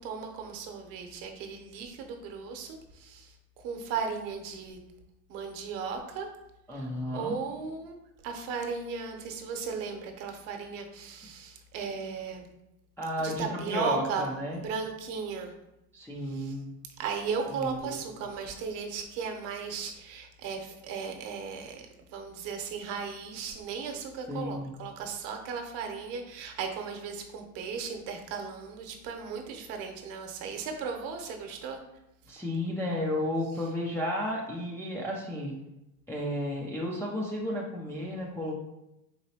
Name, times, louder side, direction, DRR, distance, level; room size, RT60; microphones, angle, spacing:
voice 1, 0.0-4.8 5.3-6.3 6.7-7.9 8.2-12.5 13.2-14.2 14.5-15.5 16.3-16.5 17.0-21.8 22.1-31.8, right 5 dB, 55° right, 4 dB, 0.9 m, -36 dB
voice 2, 6.7-7.4 13.0-14.6 15.9-16.7 17.6-18.0 24.3-24.7 32.3-35.5 36.1-38.5, left 1 dB, 5° left, -4 dB, 0.3 m, -33 dB
4.2 x 2.9 x 2.8 m, 0.89 s
hypercardioid pair, 90°, 46 cm